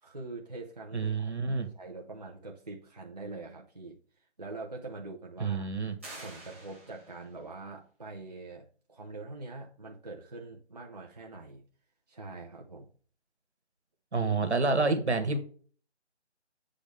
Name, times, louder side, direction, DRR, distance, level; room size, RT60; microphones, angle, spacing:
voice 1, 0.0-4.0 4.4-5.7 6.2-11.6 12.1-12.9, right 3 dB, 35° right, -1 dB, 0.8 m, -44 dB
voice 2, 0.9-1.7 5.4-6.0 14.1-15.4, right 3 dB, 70° right, 7 dB, 1.7 m, -28 dB
sound 1, 6.0-7.4, right 2 dB, 10° right, 1.2 m, -48 dB
8.3 x 5.0 x 3.5 m, 0.43 s
figure-of-eight pair, 175°, 35 cm